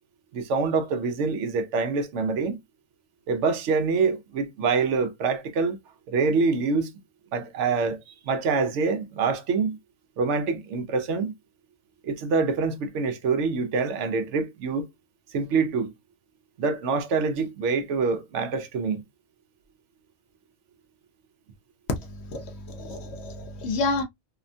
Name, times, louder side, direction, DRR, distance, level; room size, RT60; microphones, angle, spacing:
voice 1, 0.3-2.6 3.3-5.8 6.1-6.9 7.3-8.0 8.3-9.8 10.2-11.3 12.0-14.9 15.3-15.9 16.6-19.0, right 4 dB, 70° right, 0.9 m, -25 dB
voice 2, 22.1-24.0, left 3 dB, 65° left, 0.7 m, -30 dB
2.7 x 2.1 x 2.5 m
omnidirectional pair, 1.3 m